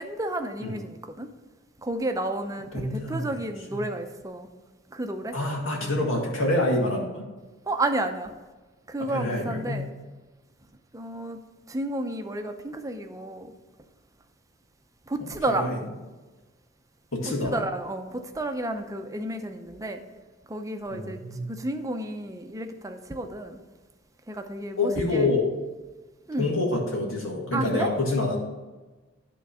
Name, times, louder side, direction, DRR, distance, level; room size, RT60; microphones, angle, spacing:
voice 1, 0.0-1.3 1.8-4.5 4.9-5.4 5.8-6.0 7.7-8.3 8.9-9.9 10.9-13.6 15.0-15.7 17.2-20.0 20.5-23.6 24.3-25.3 26.3-26.5 27.5-27.9, right 1 dB, 15° right, 6 dB, 0.6 m, -31 dB
voice 2, 2.7-3.4 5.3-7.2 9.1-9.8 15.6-15.8 17.1-17.6 20.9-21.5 24.8-25.5 26.4-28.4, left 2 dB, 90° left, -1 dB, 2.0 m, -26 dB
10.5 x 3.8 x 5.6 m, 1.2 s
head